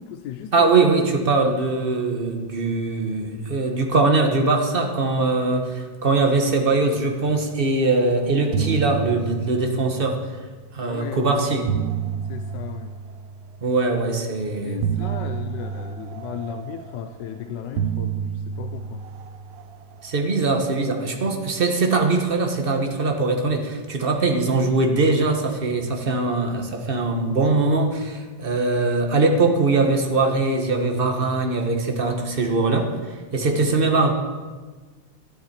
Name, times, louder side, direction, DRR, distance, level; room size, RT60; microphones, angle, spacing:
voice 1, 0.0-1.0 1.3-1.7 10.8-11.6 12.3-13.0 14.6-19.0 33.4-33.8, left 9 dB, 70° left, 7 dB, 1.2 m, -36 dB
voice 2, 0.5-10.3 10.7-11.7 13.6-14.9 20.0-33.0 33.3-34.1, right 3 dB, 35° right, 3 dB, 1.2 m, -21 dB
sound 1, 7.9-8.1 8.4-10.7 11.4-13.8 14.8-17.3 17.8-20.3, right 8 dB, 75° right, 1.3 m, -30 dB
13.0 x 12.5 x 4.3 m, 1.4 s
omnidirectional pair, 2.2 m